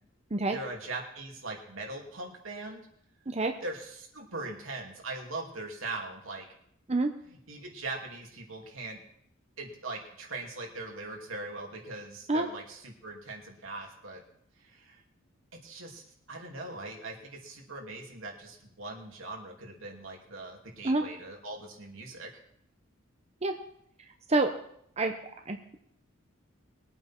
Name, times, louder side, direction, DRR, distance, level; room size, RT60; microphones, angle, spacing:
voice 1, 0.5-2.8 3.6-6.5 7.5-9.0 9.6-14.2 14.6-15.0 15.6-16.0 16.3-22.3, right 2 dB, 80° right, 0 dB, 2.9 m, -40 dB
voice 2, 25.5-25.8, right 2 dB, 30° right, 5 dB, 0.8 m, -27 dB
21.5 x 8.8 x 4.5 m, 0.70 s
head